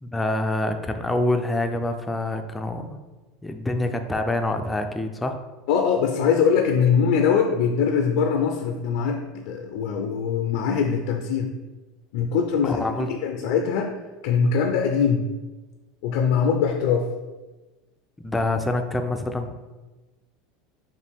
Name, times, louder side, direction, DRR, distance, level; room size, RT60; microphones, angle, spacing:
voice 1, 0.0-3.0 3.4-5.4 12.6-13.1 18.2-19.5, left 1 dB, 10° left, 6 dB, 0.4 m, -26 dB
voice 2, 5.7-11.5 12.1-12.8 13.1-13.9 14.2-15.3 16.0-17.1, left 6 dB, 70° left, 3 dB, 0.4 m, -22 dB
5.1 x 2.5 x 3.4 m, 1.2 s
supercardioid pair, 120°, 0 cm